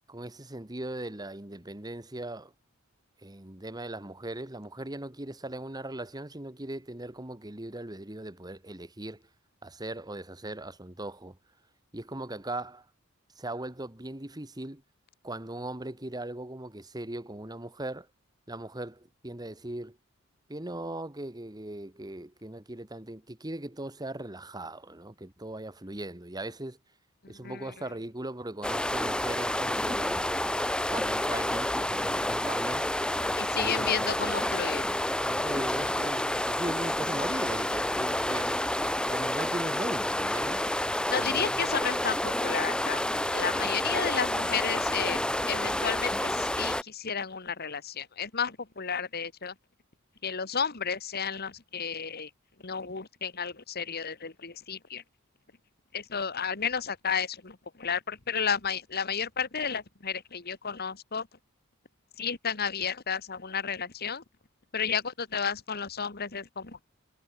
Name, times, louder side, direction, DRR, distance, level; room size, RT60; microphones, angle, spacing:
voice 1, 0.1-2.5 3.2-9.2 9.6-11.4 11.9-12.9 13.4-14.8 15.2-18.1 18.5-20.0 20.5-26.8 27.3-30.3 30.9-32.9 33.5-34.1 34.4-34.6 35.2-38.7 39.1-40.6 41.2-41.5 43.9-44.0, right 1 dB, 20° right, 1.7 m, -39 dB
voice 2, 27.2-27.7 33.4-34.8 41.1-43.1 43.3-45.2 45.4-49.5 50.2-52.3 52.6-55.0 55.9-61.3 62.2-64.2 64.7-66.8, left 6 dB, 45° left, 1.7 m, -32 dB
sound 1, 28.6-46.8, left 1 dB, 5° left, 0.9 m, -29 dB
head